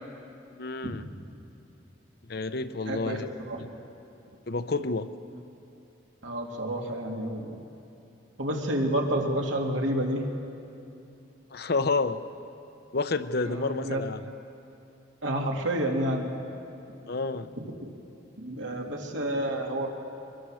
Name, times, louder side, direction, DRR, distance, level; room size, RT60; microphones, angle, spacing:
voice 1, 0.6-1.0 2.3-3.3 3.6-3.7 4.5-5.1 11.5-12.2 12.9-14.3 17.1-17.5, left 3 dB, 55° left, 11 dB, 0.7 m, -29 dB
voice 2, 2.8-3.7 6.2-7.7 8.4-10.3 13.4-14.0 15.2-16.3 17.6-17.9 18.4-19.9, right 1 dB, 80° right, 1 dB, 2.6 m, -30 dB
23.0 x 22.0 x 6.4 m, 2.8 s
head